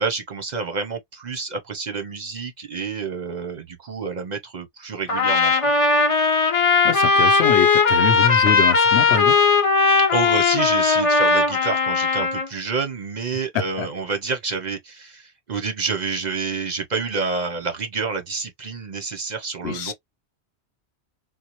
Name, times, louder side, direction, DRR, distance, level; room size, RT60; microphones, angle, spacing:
voice 1, 0.0-5.7 10.1-19.9, right 4 dB, 50° right, 0.6 m, -28 dB
Trumpet, 5.1-12.5, left 4 dB, 35° left, 0.7 m, -18 dB
voice 2, 6.8-9.4 13.5-13.9 19.6-19.9, left 7 dB, 75° left, 0.9 m, -24 dB
3.9 x 2.1 x 2.9 m
omnidirectional pair, 1.1 m